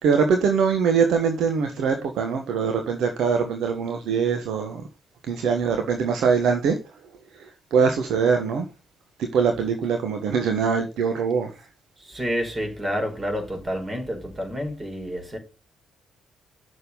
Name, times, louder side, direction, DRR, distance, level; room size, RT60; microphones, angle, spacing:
voice 1, 0.0-4.8 5.3-6.8 7.3-8.6 9.2-11.5, right 6 dB, 60° right, 1.2 m, -23 dB
voice 2, 12.0-15.4, equal, 25° right, 4.8 m, -29 dB
8.6 x 6.8 x 5.4 m
figure-of-eight pair, 40°, 0 cm